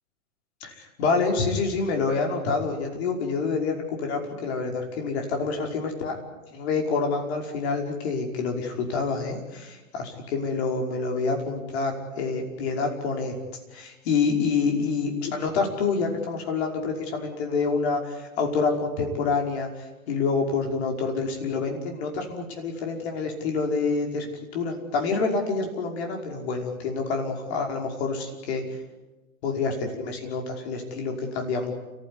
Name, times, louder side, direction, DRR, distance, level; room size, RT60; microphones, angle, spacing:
voice 1, 0.6-6.2 6.5-13.4 13.7-24.3 24.5-28.6 29.4-31.7, left 4 dB, 50° left, 2 dB, 5.5 m, -27 dB
29.5 x 15.0 x 9.9 m, 1.1 s
figure-of-eight pair, 105°, 42 cm